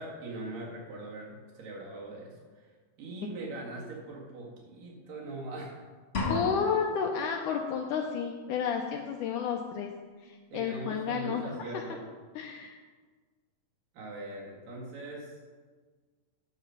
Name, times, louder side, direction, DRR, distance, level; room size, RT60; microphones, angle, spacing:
voice 1, 0.0-2.7 3.0-5.8 10.5-12.0 13.9-15.4, right 2 dB, 75° right, -2 dB, 3.5 m, -41 dB
sound 1, 6.1-7.1, left 3 dB, 55° left, 0.7 m, -32 dB
voice 2, 6.3-9.9 10.2-11.9 12.4-12.8, left 6 dB, 75° left, 2 dB, 2.0 m, -31 dB
10.0 x 7.1 x 5.8 m, 1.5 s
omnidirectional pair, 4.0 m